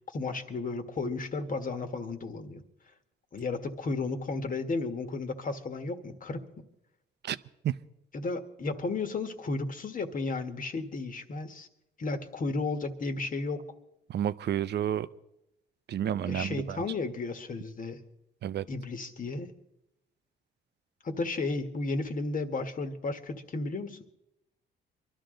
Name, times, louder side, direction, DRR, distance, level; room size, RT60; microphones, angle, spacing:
voice 1, 0.1-2.6 3.3-6.5 8.1-11.7 12.0-13.6 16.3-18.0 18.7-19.5 21.0-24.0, left 3 dB, 45° left, 7 dB, 1.6 m, -33 dB
voice 2, 14.1-15.1 15.9-16.8 18.4-18.7, right 10 dB, 60° right, 15 dB, 0.6 m, -30 dB
23.5 x 12.5 x 3.9 m, 0.85 s
cardioid pair, 90°, 20 cm